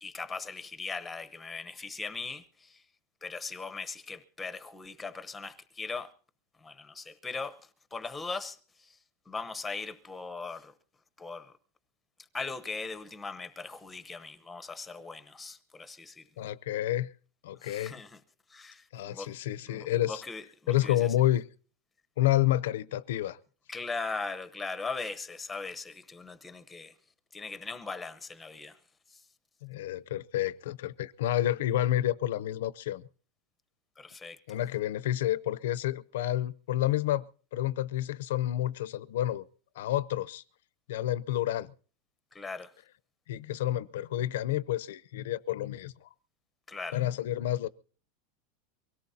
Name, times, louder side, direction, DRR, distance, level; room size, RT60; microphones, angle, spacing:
voice 1, 0.0-2.8 3.2-6.1 6.6-7.6 7.9-9.0 9.3-10.7 11.2-11.5 12.3-16.3 17.6-18.2 18.5-19.3 19.7-21.1 23.7-26.9 27.3-28.8 29.1-29.2 34.0-34.4 42.3-42.7 46.7-47.0, left 4 dB, 10° left, 0.9 m, -39 dB
voice 2, 16.4-17.1 17.4-18.0 18.9-20.2 20.7-21.4 22.2-23.4 29.6-33.0 34.5-37.2 37.5-39.5 39.8-40.4 40.9-41.7 43.3-46.1 46.9-47.7, left 13 dB, 80° left, 0.6 m, -29 dB
24.0 x 17.5 x 2.8 m
supercardioid pair, 165°, 0 cm